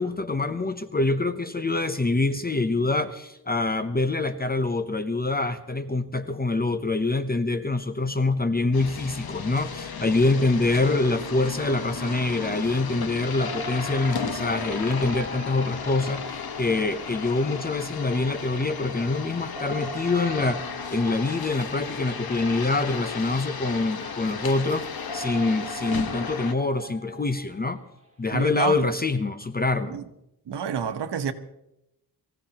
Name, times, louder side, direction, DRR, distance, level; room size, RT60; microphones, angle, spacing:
voice 1, 0.0-20.6 20.9-24.9 25.1-27.8 28.2-30.0, left 3 dB, 25° left, 0.7 m, -25 dB
sound 1, 8.7-26.5, left 6 dB, 65° left, 1.3 m, -35 dB
sound 2, 10.6-10.7 12.0-16.8 18.0-22.3 23.1-23.2 23.6-28.0 28.4-28.7, right 1 dB, 20° right, 3.1 m, -42 dB
voice 2, 28.3-28.8 29.9-30.0 30.5-31.3, right 7 dB, 80° right, 1.2 m, -29 dB
25.0 x 15.0 x 3.0 m
wide cardioid pair, 95°, 40 cm